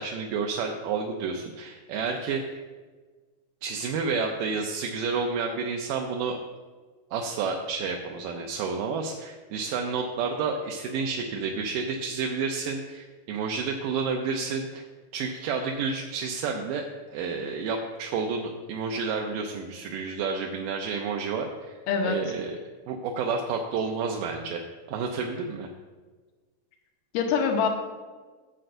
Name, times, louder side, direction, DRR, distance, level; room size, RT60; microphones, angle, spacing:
voice 1, 0.0-2.6 3.6-6.4 7.1-14.9 15.1-22.6 22.9-25.7, right 5 dB, 85° right, 2 dB, 2.3 m, -30 dB
voice 2, 21.9-22.3 27.1-27.7, left 6 dB, 85° left, 3 dB, 2.6 m, -24 dB
15.0 x 7.7 x 2.6 m, 1.4 s
omnidirectional pair, 3.8 m